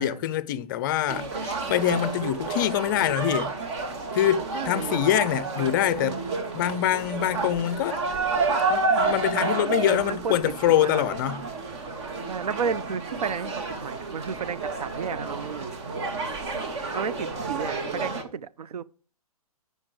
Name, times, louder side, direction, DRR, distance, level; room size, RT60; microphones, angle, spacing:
voice 1, 0.0-3.5 4.1-6.2 6.5-8.0 8.7-11.4, left 12 dB, 35° left, 0.4 m, -25 dB
sound 1, 1.1-18.2, right 3 dB, 50° right, 1.3 m, -30 dB
voice 2, 4.5-5.1 5.6-5.7 6.0-6.6 9.8-11.1 12.3-15.7 16.9-18.8, right 6 dB, 80° right, 0.5 m, -33 dB
7.3 x 5.4 x 4.7 m
hypercardioid pair, 135°, 19 cm